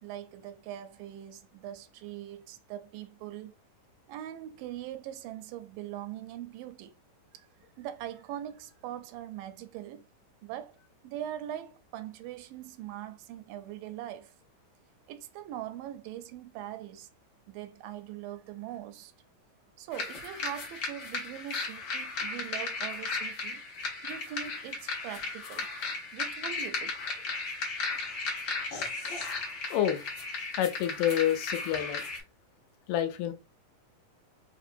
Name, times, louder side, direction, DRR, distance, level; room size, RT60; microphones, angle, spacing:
voice 1, 0.0-3.5 4.1-7.0 7.3-7.5 7.8-10.0 10.4-10.8 11.0-14.3 15.1-17.1 17.5-19.1 19.8-23.6 24.0-25.7 26.1-27.2, right 12 dB, 85° right, 2.2 m, -41 dB
sound 1, 19.9-32.2, left 3 dB, 60° left, 1.3 m, -35 dB
voice 2, 29.7-30.0 30.6-32.0 32.9-33.3, left 10 dB, 80° left, 2.2 m, -28 dB
5.1 x 2.9 x 2.6 m
omnidirectional pair, 3.8 m